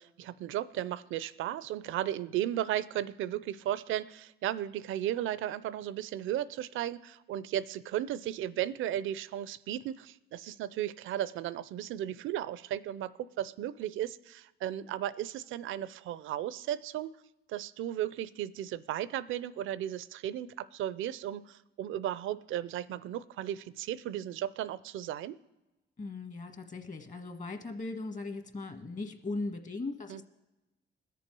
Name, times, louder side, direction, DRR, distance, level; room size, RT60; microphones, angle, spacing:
voice 1, 0.0-17.2 17.5-25.4 30.1-30.2, right 12 dB, 80° right, 17 dB, 0.5 m, -35 dB
voice 2, 26.0-30.2, left 3 dB, 40° left, 6 dB, 1.5 m, -39 dB
20.5 x 6.9 x 4.6 m, 1.0 s
cardioid pair, 90°, 20 cm